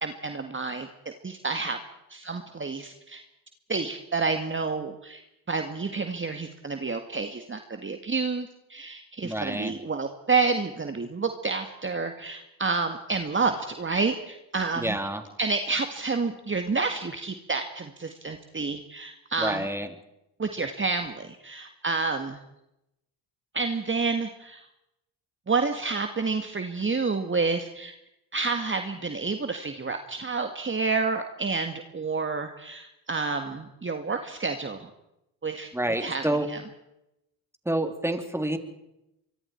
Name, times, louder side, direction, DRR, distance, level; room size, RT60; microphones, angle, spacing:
voice 1, 0.0-0.9 1.2-1.8 2.1-3.2 3.7-5.2 5.5-15.0 15.4-19.7 20.4-22.4 23.5-24.7 25.5-27.9 28.3-34.9 35.4-35.7 36.0-36.6, right 4 dB, 25° right, 6 dB, 1.9 m, -29 dB
voice 2, 9.2-9.7 14.8-15.2 19.4-19.9 35.7-36.5 37.6-38.6, right 1 dB, 5° right, 6 dB, 3.3 m, -28 dB
24.5 x 24.0 x 4.6 m, 0.87 s
supercardioid pair, 60°, 47 cm